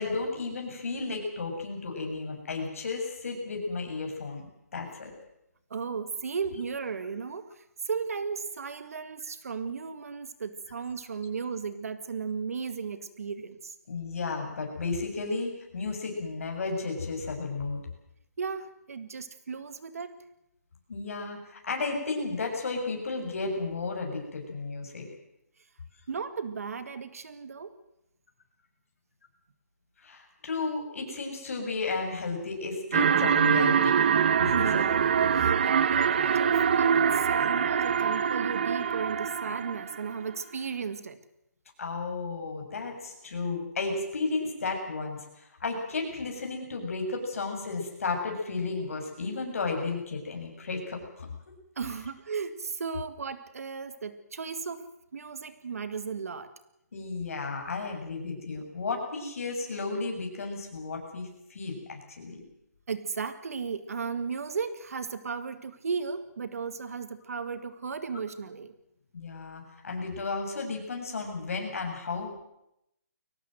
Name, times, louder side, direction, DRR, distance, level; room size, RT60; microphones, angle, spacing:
voice 1, 0.0-5.1 13.9-17.8 20.9-25.1 30.0-34.0 34.4-34.9 41.8-51.3 56.9-62.4 69.1-72.3, left 3 dB, 55° left, 2 dB, 7.1 m, -33 dB
voice 2, 5.7-13.7 18.4-20.3 26.1-27.8 34.5-35.0 35.3-41.2 51.8-56.5 62.9-68.7, right 5 dB, 60° right, 12 dB, 1.9 m, -35 dB
sound 1, 32.9-40.1, right 7 dB, 35° right, 0.9 m, -24 dB
23.0 x 18.5 x 7.8 m, 0.83 s
hypercardioid pair, 175°, 9 cm